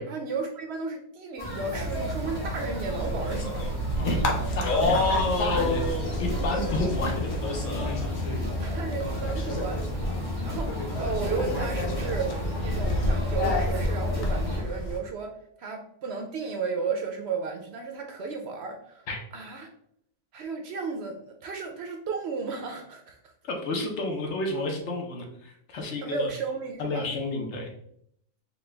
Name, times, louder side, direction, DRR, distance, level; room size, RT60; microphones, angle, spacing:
voice 1, 0.0-3.6 8.2-9.8 10.4-12.3 12.6-15.3 15.6-19.0 19.3-19.7 20.3-23.2 26.0-27.1, right 4 dB, 65° right, 4 dB, 0.7 m, -34 dB
sound 1, 1.4-14.6, left 1 dB, 20° left, 1.1 m, -32 dB
sound 2, 1.7-15.0, left 1 dB, 85° left, 1.2 m, -30 dB
voice 2, 4.6-5.0 5.4-5.9 6.2-7.2 19.1-19.2 23.5-26.3 26.8-27.7, left 2 dB, 65° left, 1 dB, 1.0 m, -31 dB
4.4 x 2.2 x 3.3 m, 0.70 s
omnidirectional pair, 1.4 m